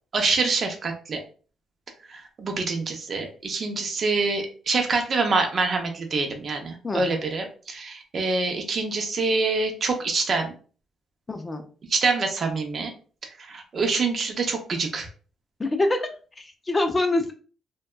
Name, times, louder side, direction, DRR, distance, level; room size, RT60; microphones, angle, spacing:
voice 1, 0.1-1.2 2.1-10.5 11.9-12.9 13.4-15.1, right 3 dB, 45° right, 4 dB, 0.6 m, -26 dB
voice 2, 6.8-7.2 11.3-11.6 15.6-16.1 16.4-17.3, left 2 dB, 25° left, 5 dB, 0.4 m, -25 dB
2.6 x 2.2 x 2.2 m, 0.39 s
cardioid pair, 90°, 0 cm